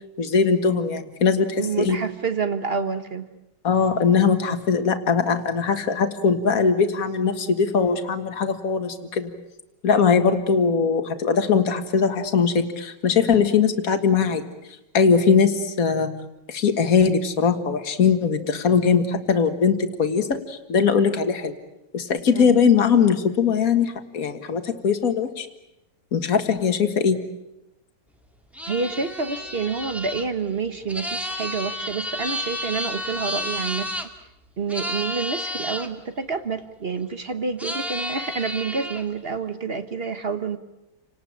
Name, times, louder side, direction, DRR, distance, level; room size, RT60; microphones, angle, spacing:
voice 1, 0.2-2.0 3.6-9.3 9.8-14.4 14.9-16.1 16.5-21.5 21.9-25.5 26.1-27.2, left 6 dB, 45° left, 7 dB, 2.0 m, -20 dB
voice 2, 1.5-3.3 10.2-10.4 22.3-22.6 28.7-33.9 34.6-40.6, right 5 dB, 35° right, 10 dB, 1.0 m, -28 dB
sound 1, 28.5-34.1 34.7-35.9 37.6-39.0, equal, ahead, 1.7 m, -31 dB
29.5 x 19.0 x 8.8 m, 0.96 s
omnidirectional pair, 2.3 m